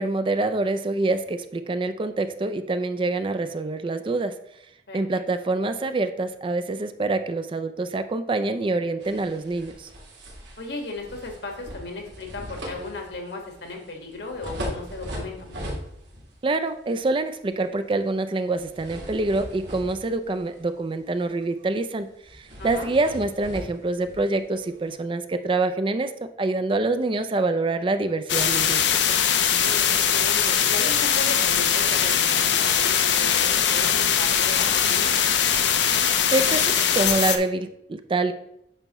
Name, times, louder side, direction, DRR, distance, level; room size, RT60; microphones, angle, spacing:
voice 1, 0.0-4.3 4.9-9.9 16.4-26.1 26.4-28.8 36.3-38.3, right 2 dB, 30° right, 10 dB, 0.4 m, -26 dB
sound 1, 9.0-16.4 16.7-17.0 18.5-20.8 21.1-21.3 21.6-21.7 22.2-24.9, equal, 75° right, 2.3 m, -39 dB
voice 2, 10.6-15.6 22.6-22.9 29.6-32.9 33.2-35.1, left 2 dB, 75° left, 2 dB, 1.6 m, -35 dB
sound 2, 28.3-37.4, left 8 dB, 90° left, 0.7 m, -21 dB
8.9 x 5.7 x 3.0 m, 0.79 s
head